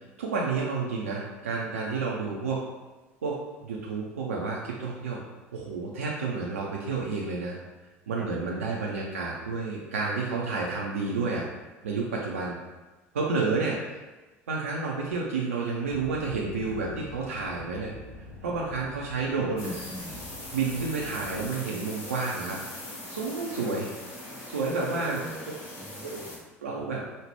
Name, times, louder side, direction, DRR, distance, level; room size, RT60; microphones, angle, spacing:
voice 1, 0.2-2.6 3.2-5.2 5.5-7.5 8.1-11.4 11.8-12.6 13.1-13.8 14.5-17.9 18.4-19.7 20.5-22.6 23.1-23.9 24.5-25.2 26.0-26.2 26.6-27.0, right 4 dB, 80° right, -3 dB, 0.5 m, -30 dB
voice 2, 8.2-8.8 19.4-20.2 24.7-26.5, equal, 10° right, 2 dB, 0.4 m, -43 dB
sound 1, 15.9-21.5, left 2 dB, 80° left, 0.6 m, -45 dB
sound 2, 19.6-26.4, left 1 dB, 50° left, 1.3 m, -41 dB
5.1 x 2.1 x 3.3 m, 1.2 s
figure-of-eight pair, 65°, 7 cm